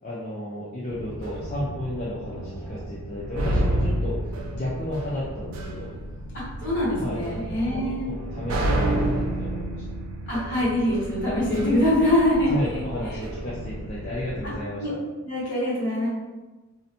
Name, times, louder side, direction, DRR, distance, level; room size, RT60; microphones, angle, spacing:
voice 1, 0.0-4.2 4.5-5.9 7.0-7.2 7.5-9.8 12.4-14.8, left 1 dB, 35° left, -7 dB, 0.4 m, -33 dB
sound 1, 0.9-14.6, right 1 dB, 65° right, 0.3 m, -30 dB
voice 2, 6.3-8.1 10.3-12.5 14.8-14.9 15.2-16.1, left 1 dB, 50° left, -7 dB, 1.1 m, -24 dB
2.6 x 2.1 x 2.7 m, 1.2 s
head